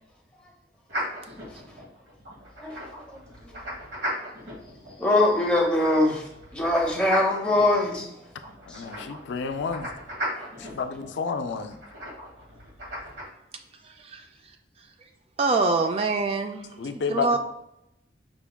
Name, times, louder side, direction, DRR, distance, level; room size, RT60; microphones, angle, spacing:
sound 1, 0.9-13.2, equal, 80° right, 1.3 m, -37 dB
voice 1, 5.0-6.2 6.5-8.1 8.7-8.8 10.4-10.5, left 2 dB, 5° left, -2 dB, 0.8 m, -22 dB
voice 2, 8.7-9.9 10.6-11.8 16.8-17.4, left 5 dB, 80° left, 8 dB, 0.4 m, -30 dB
voice 3, 13.8-14.3 15.4-17.4, right 3 dB, 35° right, 6 dB, 0.3 m, -25 dB
5.0 x 3.5 x 2.2 m, 0.82 s
head